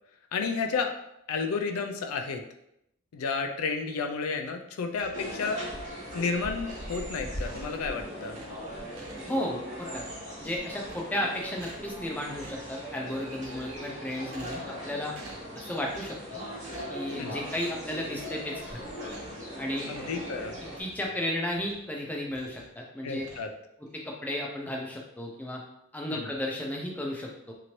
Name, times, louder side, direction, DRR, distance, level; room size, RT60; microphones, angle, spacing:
voice 1, 0.3-0.9 1.3-2.4 3.1-5.6 6.1-8.4 17.2-17.4 19.9-20.6 23.0-23.5 26.1-26.3, left 5 dB, 80° left, 5 dB, 0.4 m, -31 dB
sound 1, 4.9-5.5 6.0-7.0 7.3-8.0 8.3-9.6 9.8-10.4 10.8-11.3 11.5-11.9 12.3-12.7 13.2-13.9 14.3-14.8 15.1-15.5 15.9-16.3 16.6-17.0 17.4-17.7 18.1-18.4 19.0-19.5 19.9-21.9 22.3-22.8 23.1-24.0, right 2 dB, 85° right, 0.7 m, -51 dB
sound 2, 5.1-20.8, equal, 35° right, 1.2 m, -39 dB
voice 2, 9.3-10.0 10.4-15.1 15.5-16.4 16.9-18.9 19.6-19.9 20.8-23.2 23.9-25.6 25.9-27.5, left 1 dB, 5° left, -1 dB, 0.4 m, -34 dB
2.9 x 2.6 x 3.0 m, 0.81 s
head